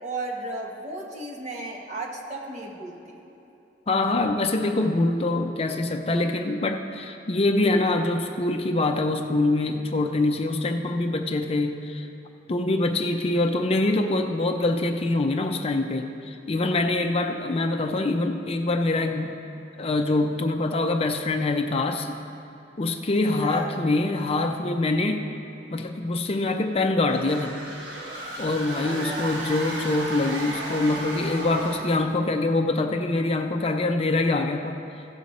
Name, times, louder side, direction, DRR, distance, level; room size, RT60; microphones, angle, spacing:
voice 1, 0.0-3.2 23.4-23.7 28.8-29.4, right 2 dB, 40° right, -1 dB, 1.3 m, -35 dB
voice 2, 3.9-12.1 12.5-19.4 19.8-22.1 22.8-25.3 25.7-27.6 28.4-34.8, left 2 dB, 35° left, 5 dB, 0.5 m, -24 dB
sound 1, 27.1-32.0, right 2 dB, 75° right, 1.5 m, -34 dB
16.0 x 6.3 x 4.1 m, 2.9 s
head